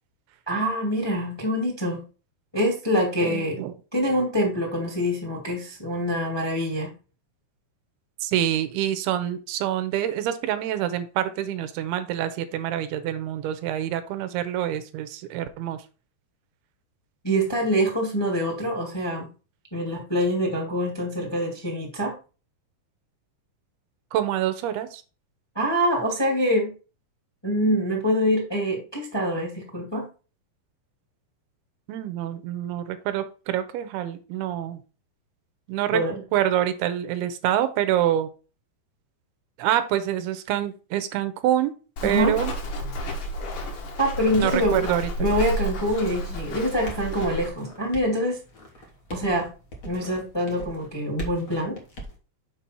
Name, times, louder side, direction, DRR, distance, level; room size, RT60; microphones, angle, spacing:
voice 1, 0.5-2.0 2.5-3.6 3.9-6.9 17.2-19.3 19.7-22.2 25.5-26.7 27.4-30.1 35.9-36.2 42.0-42.3 44.0-44.8 45.2-48.4 49.1-49.5 49.8-51.8, equal, 10° left, 0 dB, 1.3 m, -25 dB
voice 2, 3.2-3.7 8.2-15.8 24.1-25.0 31.9-34.8 35.7-36.0 36.3-38.3 39.6-41.7 42.0-42.5 44.4-45.1, right 11 dB, 90° right, 10 dB, 2.7 m, -26 dB
Walk footsteps, 42.0-47.5, equal, 60° left, 2.6 m, -31 dB
sound 1, 46.9-52.2, right 1 dB, 75° left, 0.7 m, -41 dB
6.9 x 5.4 x 4.3 m, 0.34 s
omnidirectional pair, 4.5 m